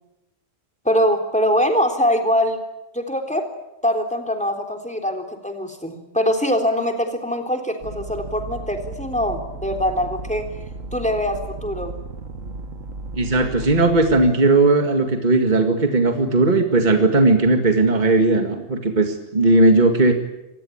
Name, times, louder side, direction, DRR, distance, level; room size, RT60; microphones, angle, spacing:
voice 1, 0.9-2.6 2.9-3.4 3.8-10.4 10.9-12.0, equal, 5° left, 4 dB, 3.6 m, -22 dB
sound 1, 7.8-14.3, right 3 dB, 85° right, 2.1 m, -34 dB
voice 2, 13.2-20.1, right 2 dB, 35° right, 5 dB, 2.2 m, -17 dB
25.5 x 20.0 x 8.7 m, 0.94 s
omnidirectional pair, 1.3 m